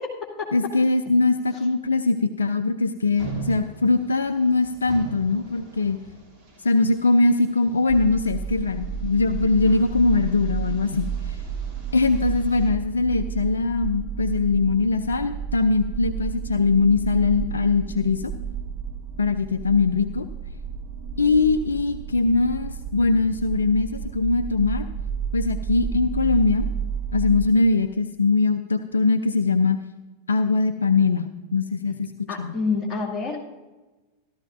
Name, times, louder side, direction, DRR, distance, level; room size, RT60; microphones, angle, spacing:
voice 1, 0.0-0.5 32.3-33.4, left 4 dB, 20° left, -3 dB, 2.4 m, -28 dB
voice 2, 0.5-6.0 6.6-11.4 11.9-18.3 19.2-20.3 21.2-24.9 25.3-26.7 27.1-29.8 30.3-32.5, left 3 dB, 75° left, 10 dB, 0.4 m, -21 dB
sound 1, 3.1-12.7, right 5 dB, 30° right, 3.0 m, -42 dB
sound 2, 7.9-27.5, right 7 dB, 50° right, 1.3 m, -31 dB
14.0 x 12.5 x 2.6 m, 1.2 s
figure-of-eight pair, 90°, 0 cm